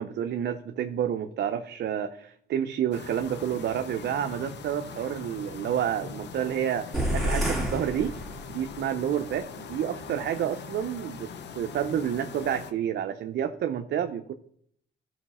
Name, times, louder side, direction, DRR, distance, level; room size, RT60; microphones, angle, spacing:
voice 1, 0.0-8.1 8.5-11.3 11.6-14.3, right 9 dB, 60° right, 8 dB, 0.6 m, -29 dB
sound 1, 2.9-12.7, left 6 dB, 60° left, 0.8 m, -42 dB
sound 2, 6.9-8.8, equal, ahead, 2.5 m, -29 dB
13.5 x 4.8 x 4.2 m, 0.66 s
cardioid pair, 90°, 20 cm